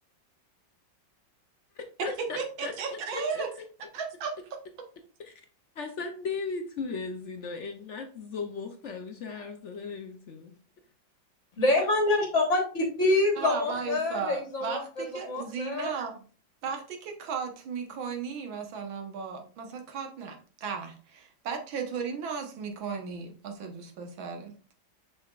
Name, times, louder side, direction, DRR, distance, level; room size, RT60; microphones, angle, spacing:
voice 1, 1.7-3.4 5.2-5.3 5.8-10.5, left 4 dB, 75° left, 5 dB, 0.6 m, -37 dB
voice 2, 2.4-3.5 3.9-4.3 13.4-16.3 16.6-24.5, right 6 dB, 85° right, 4 dB, 1.9 m, -35 dB
voice 3, 11.6-15.9, left 2 dB, 45° left, 2 dB, 1.4 m, -26 dB
7.0 x 5.8 x 2.4 m, 0.40 s
omnidirectional pair, 2.1 m